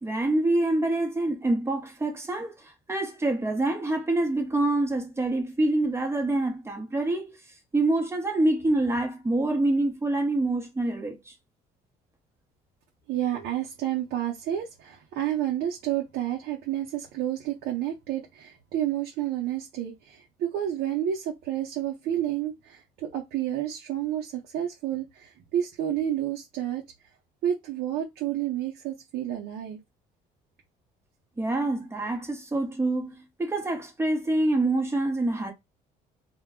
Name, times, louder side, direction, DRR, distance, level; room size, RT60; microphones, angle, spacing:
voice 1, 0.0-7.4 7.7-11.3 31.4-35.5, right 2 dB, 15° right, 0.8 m, -26 dB
voice 2, 13.1-26.8 27.4-29.8, right 11 dB, 75° right, 0.6 m, -30 dB
2.2 x 2.1 x 3.5 m
cardioid pair, 110°, 17 cm